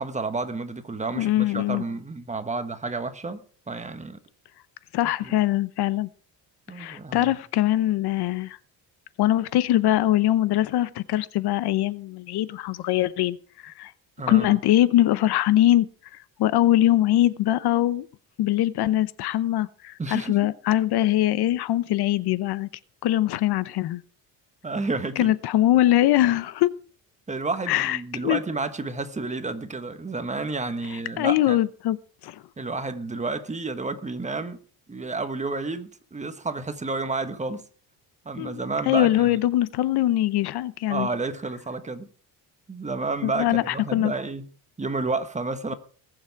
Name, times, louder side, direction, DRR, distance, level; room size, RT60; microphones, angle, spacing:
voice 1, 0.0-4.2 5.2-5.4 6.7-7.3 14.2-14.6 20.0-20.4 24.6-25.3 27.3-31.6 32.6-34.6 34.9-37.6 38.2-39.4 40.9-42.1 42.7-44.5 44.8-45.7, right 3 dB, 15° right, 1.3 m, -30 dB
voice 2, 1.1-1.8 4.9-6.1 6.7-8.6 9.2-13.4 13.6-13.9 14.3-18.1 18.4-22.7 23.0-24.0 25.2-26.7 27.7-28.4 31.2-32.0 32.2-32.4 38.4-38.6 38.9-41.1 43.2-44.1, left 14 dB, 70° left, 0.8 m, -22 dB
20.0 x 7.2 x 4.7 m
cardioid pair, 125°, 41 cm